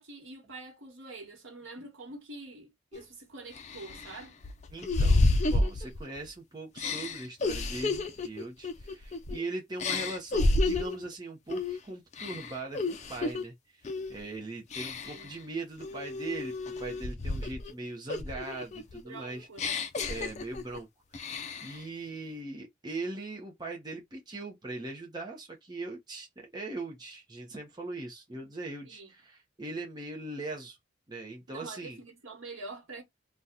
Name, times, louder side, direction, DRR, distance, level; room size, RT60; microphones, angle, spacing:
voice 1, 0.0-4.4 15.0-15.3 19.0-19.9 28.9-29.1 31.5-33.0, right 3 dB, 80° right, 1.2 m, -46 dB
sound 1, 2.9-3.0 3.6-6.3 6.8-9.4 9.8-11.0 11.5-11.8 12.1-13.4 13.8-14.2 14.7-15.3 15.8-17.7 18.1-20.8 21.1-21.8, left 2 dB, 35° left, 0.4 m, -30 dB
voice 2, 4.7-19.5 20.1-20.9 21.2-30.8 31.1-32.0, right 2 dB, 20° right, 0.7 m, -40 dB
2.8 x 2.2 x 3.5 m
head